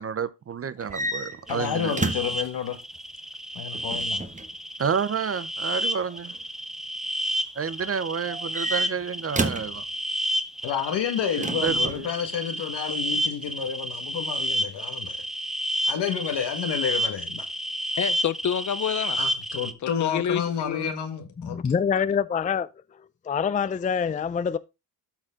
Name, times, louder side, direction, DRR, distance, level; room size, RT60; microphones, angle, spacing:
voice 1, 0.0-2.0 4.8-6.3 7.6-9.8 11.4-12.1, right 6 dB, 35° right, 0.6 m, -29 dB
sound 1, 0.8-2.5 3.7-4.5 6.0-6.4 8.2-9.8 11.4-12.1, right 2 dB, 20° right, 1.3 m, -31 dB
voice 2, 1.5-2.8 3.5-4.2 10.6-15.2 15.9-17.5 19.1-21.6, left 8 dB, 90° left, 1.7 m, -30 dB
sound 2, 1.5-19.7, equal, ahead, 0.7 m, -30 dB
voice 3, 18.0-19.2 19.8-20.9, left 9 dB, 45° left, 0.8 m, -28 dB
voice 4, 21.4-22.7 23.0-24.6, left 7 dB, 20° left, 0.4 m, -26 dB
12.5 x 4.3 x 3.7 m
cardioid pair, 90°, 40 cm